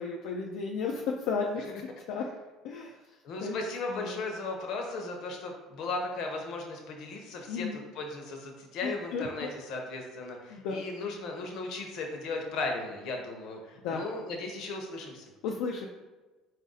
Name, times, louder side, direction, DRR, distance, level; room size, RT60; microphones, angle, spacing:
voice 1, 0.0-1.7 2.1-2.2 2.6-3.0 3.4-3.6 3.9-4.2 7.5-7.8 8.8-9.5 10.5-10.8 13.8-14.0 15.4-15.9, left 5 dB, 75° left, 0 dB, 0.4 m, -33 dB
voice 2, 3.2-15.2, left 3 dB, 60° left, 2 dB, 0.8 m, -36 dB
4.0 x 2.6 x 3.9 m, 1.2 s
cardioid pair, 130°, 0 cm